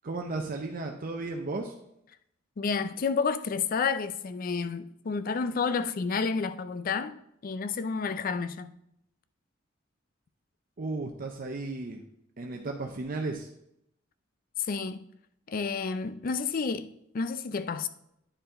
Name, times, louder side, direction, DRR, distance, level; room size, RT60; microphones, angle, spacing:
voice 1, 0.0-1.7 10.8-12.0 12.4-13.5, right 3 dB, 45° right, 0.6 m, -34 dB
voice 2, 2.6-8.7 14.6-15.0 15.5-16.9 17.1-17.9, left 5 dB, 45° left, 0.4 m, -30 dB
10.0 x 4.7 x 3.8 m
head